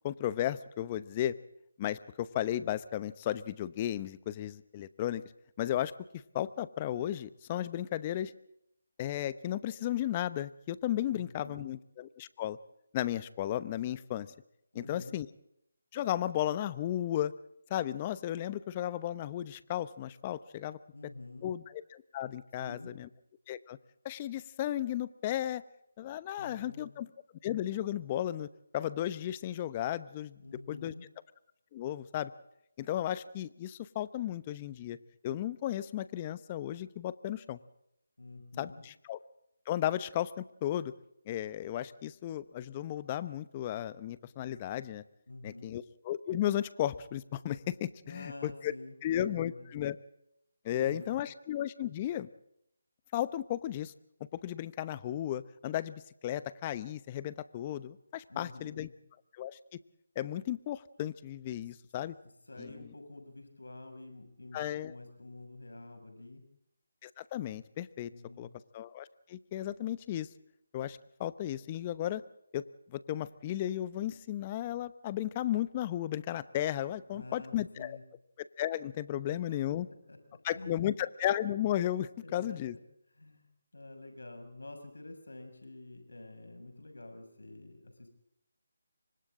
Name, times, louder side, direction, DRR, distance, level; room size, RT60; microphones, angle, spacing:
voice 1, 0.0-1.3 1.8-5.2 5.6-5.9 6.3-8.3 9.0-12.6 12.9-14.3 14.7-15.3 15.9-17.3 17.7-20.8 21.4-21.6 21.9-23.1 23.5-23.8 24.0-25.6 26.0-27.1 27.4-28.5 28.7-30.4 30.7-30.9 31.7-32.3 32.8-35.0 35.2-37.6 38.6-39.2 39.7-40.9 41.3-45.0 45.4-48.7 49.0-50.0 50.6-52.3 53.1-53.9 54.4-58.9 59.4-59.6 60.2-62.1 62.6-62.7 64.5-64.9 67.0-68.1 68.4-68.5 68.7-70.3 70.7-72.2 72.5-72.6 72.9-78.0 78.6-79.9 80.4-82.7, left 12 dB, 25° left, 16 dB, 0.9 m, -34 dB
voice 2, 11.1-11.7 14.7-15.2 20.9-21.5 22.6-22.9 26.4-26.9 30.4-31.0 38.2-38.8 45.3-45.7 48.0-49.7 50.7-51.2 58.3-58.9 62.5-66.4 68.1-68.5 77.1-78.0 79.3-79.6 80.1-80.2 80.5-80.9 82.2-82.6 83.1-83.5 83.7-88.1, left 2 dB, 85° left, 5 dB, 6.5 m, -48 dB
30.0 x 24.5 x 3.8 m, 0.77 s
figure-of-eight pair, 160°, 0 cm